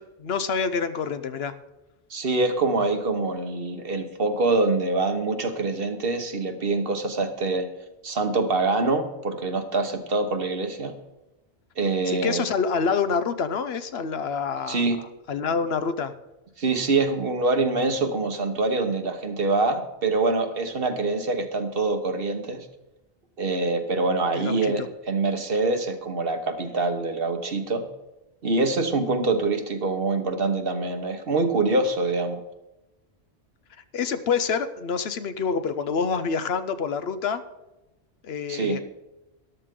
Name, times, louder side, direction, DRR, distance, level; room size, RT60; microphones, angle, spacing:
voice 1, 0.0-1.5 12.1-14.9 15.3-16.1 24.3-24.9 33.9-37.4 38.2-38.8, left 5 dB, 70° left, 11 dB, 1.0 m, -27 dB
voice 2, 2.1-7.7 8.0-10.9 11.8-12.5 14.7-15.0 16.6-22.7 23.4-27.9 28.4-32.4 38.5-38.8, right 3 dB, 60° right, 7 dB, 1.4 m, -25 dB
13.5 x 11.5 x 3.7 m, 0.98 s
omnidirectional pair, 1.1 m